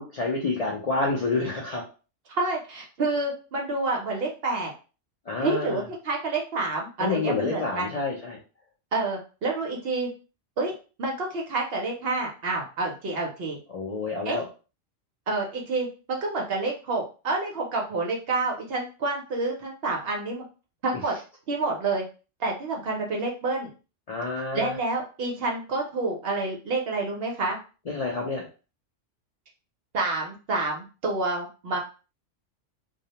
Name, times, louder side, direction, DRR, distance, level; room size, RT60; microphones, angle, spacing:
voice 1, 0.0-1.8 5.3-5.8 7.0-8.4 13.7-14.5 24.1-24.8 27.9-28.5, left 3 dB, 60° left, -2 dB, 0.4 m, -28 dB
voice 2, 2.3-4.7 5.4-8.0 8.9-10.1 10.6-13.6 14.3-14.4 15.3-20.4 20.8-21.1 21.5-22.0 22.4-23.7 24.5-27.6 29.9-31.8, right 3 dB, 60° right, 0 dB, 0.7 m, -28 dB
2.3 x 2.0 x 2.7 m, 0.34 s
omnidirectional pair, 1.3 m